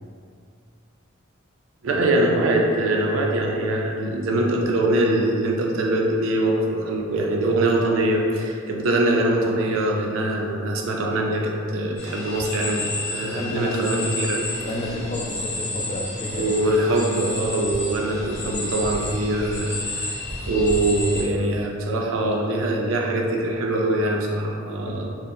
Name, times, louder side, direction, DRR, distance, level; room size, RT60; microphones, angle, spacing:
voice 1, 1.8-14.4 16.3-25.1, right 1 dB, 70° right, 0 dB, 0.4 m, -23 dB
sound 1, 12.0-21.2, left 2 dB, 55° left, 0.7 m, -31 dB
voice 2, 13.4-13.9 14.6-16.5 24.9-25.0, left 1 dB, 30° left, -1 dB, 0.3 m, -30 dB
2.7 x 2.0 x 3.6 m, 2.3 s
head